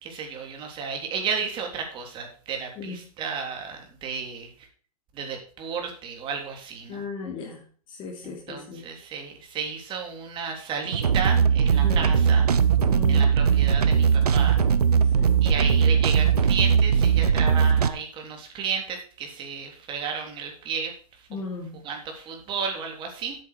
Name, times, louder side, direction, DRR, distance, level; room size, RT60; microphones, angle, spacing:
voice 1, 0.0-4.5 5.1-7.0 8.2-12.5 13.1-14.6 15.4-20.9 21.3-21.4 21.8-23.4, right 6 dB, 25° right, 3 dB, 3.5 m, -33 dB
voice 2, 6.9-8.9 11.8-12.1 12.9-13.3 15.1-15.4 21.3-21.8, left 4 dB, 25° left, -3 dB, 2.9 m, -36 dB
sound 1, 10.9-17.9, right 7 dB, 90° right, 1.1 m, -20 dB
10.0 x 8.8 x 4.6 m, 0.42 s
hypercardioid pair, 140°, 19 cm